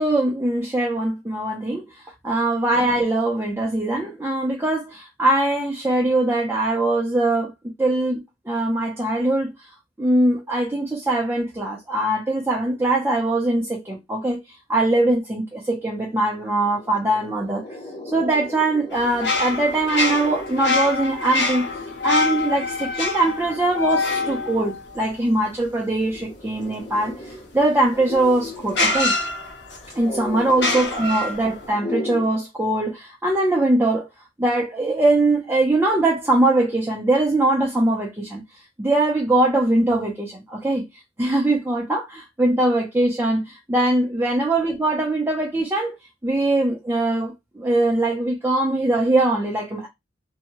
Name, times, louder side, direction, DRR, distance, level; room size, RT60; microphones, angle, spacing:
voice 1, 0.0-1.9 2.2-7.5 7.8-9.5 10.0-14.4 14.7-17.6 18.1-21.7 22.0-27.1 27.5-29.1 29.9-34.1 34.4-38.4 38.8-40.9 41.2-46.0 46.2-49.9, right 2 dB, 15° right, 0.5 m, -21 dB
sound 1, 16.1-32.3, left 2 dB, 30° left, 0.6 m, -37 dB
sound 2, 18.9-25.5 27.8-27.9 28.7-29.9 30.5-31.7, left 3 dB, 75° left, 0.9 m, -25 dB
2.7 x 2.2 x 2.9 m
head